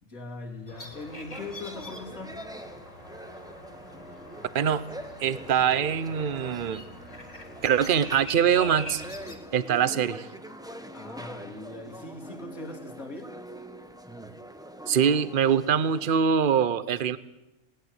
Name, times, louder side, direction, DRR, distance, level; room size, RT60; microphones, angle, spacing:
voice 1, 0.0-2.4 10.9-13.3, left 2 dB, 70° left, 1 dB, 3.3 m, -40 dB
sound 1, 0.7-9.4, left 1 dB, 25° left, 2.2 m, -44 dB
sound 2, 0.9-16.2, equal, 5° right, 1.0 m, -43 dB
voice 2, 4.5-4.9 5.2-6.8 7.6-9.0 9.5-10.3 14.9-17.2, right 8 dB, 45° right, 16 dB, 0.9 m, -23 dB
19.5 x 18.5 x 8.1 m, 0.92 s
omnidirectional pair, 1.5 m